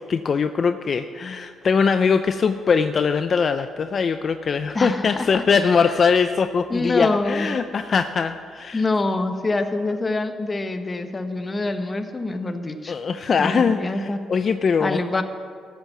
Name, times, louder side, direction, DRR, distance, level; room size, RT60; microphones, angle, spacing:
voice 1, 0.0-8.8 12.9-15.0, left 5 dB, 45° left, 9 dB, 0.5 m, -21 dB
voice 2, 4.7-5.3 6.7-7.5 8.7-13.0 13.4-14.2 14.8-15.2, left 2 dB, 25° left, 7 dB, 1.2 m, -25 dB
14.0 x 8.1 x 7.3 m, 2.2 s
cardioid pair, 90°, 0 cm